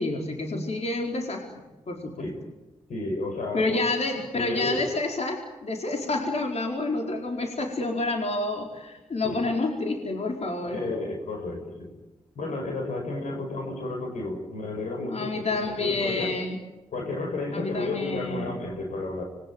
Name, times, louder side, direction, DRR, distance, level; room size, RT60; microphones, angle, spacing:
voice 1, 0.0-1.5 1.9-2.3 3.5-10.8 15.0-16.6 17.5-18.6, left 2 dB, 60° left, 1 dB, 4.6 m, -29 dB
voice 2, 2.9-3.8 4.3-4.8 9.2-9.5 10.6-11.9 12.3-16.3 16.9-19.2, left 2 dB, 80° left, 2 dB, 6.4 m, -32 dB
26.0 x 23.0 x 9.2 m, 1.1 s
cardioid pair, 45°, 13 cm